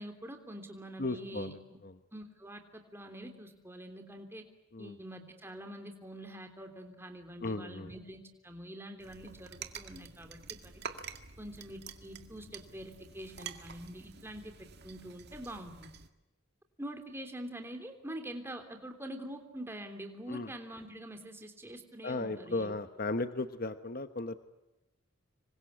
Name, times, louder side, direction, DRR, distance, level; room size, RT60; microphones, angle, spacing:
voice 1, 0.0-1.8 2.1-4.5 4.8-10.8 11.4-14.5 14.8-15.9 16.8-22.7, right 1 dB, 10° right, 5 dB, 3.2 m, -45 dB
voice 2, 1.0-1.9 4.7-5.0 7.4-7.9 20.3-20.5 22.0-24.4, left 2 dB, 45° left, 10 dB, 1.1 m, -36 dB
sound 1, 9.0-16.1, right 6 dB, 55° right, 1.9 m, -48 dB
26.5 x 24.5 x 8.5 m, 1.0 s
head